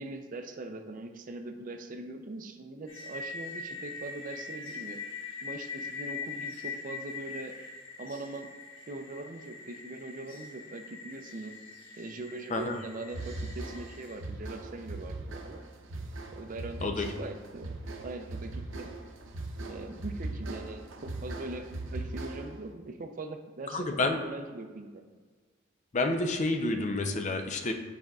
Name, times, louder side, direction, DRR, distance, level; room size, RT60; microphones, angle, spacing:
voice 1, 0.0-5.0 5.4-7.6 8.0-8.5 8.9-11.5 12.0-15.6 16.3-17.7 18.0-18.9 19.7-25.0, right 2 dB, 45° right, 6 dB, 0.5 m, -41 dB
sound 1, 2.9-14.2, left 4 dB, 85° left, 1.2 m, -42 dB
voice 2, 12.5-12.8 16.8-17.1 23.7-24.2 25.9-27.7, left 2 dB, 40° left, 5 dB, 0.5 m, -29 dB
sound 2, 13.1-22.7, right 2 dB, 85° right, 0.7 m, -40 dB
8.7 x 5.1 x 2.3 m, 1.4 s
head